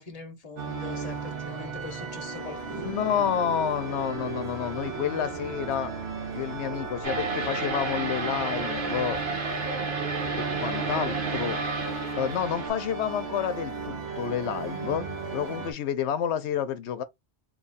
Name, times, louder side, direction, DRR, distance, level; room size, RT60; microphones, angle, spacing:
voice 1, 0.0-3.3, left 4 dB, 40° left, 0.8 m, -43 dB
sound 1, 0.6-15.7, right 5 dB, 70° right, 1.2 m, -35 dB
voice 2, 2.7-5.9 6.3-9.2 10.4-11.6 12.2-15.1 15.3-17.0, left 9 dB, 85° left, 0.9 m, -29 dB
sound 2, 7.0-12.7, right 3 dB, 55° right, 1.2 m, -31 dB
2.8 x 2.3 x 4.0 m
omnidirectional pair, 1.1 m